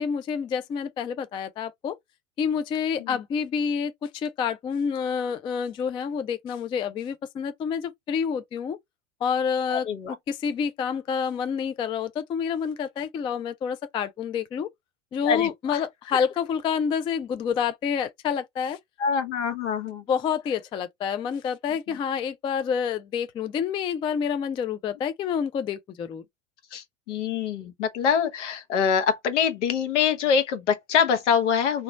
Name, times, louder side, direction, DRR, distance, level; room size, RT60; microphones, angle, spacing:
voice 1, 0.0-2.0 2.4-8.8 9.2-14.7 15.1-18.8 20.1-26.2, left 7 dB, 15° left, 0.3 m, -28 dB
voice 2, 9.7-10.1 15.2-15.8 19.0-20.0 26.7-31.8, left 7 dB, 65° left, 1.1 m, -25 dB
3.1 x 3.0 x 3.9 m
figure-of-eight pair, 80°, 38 cm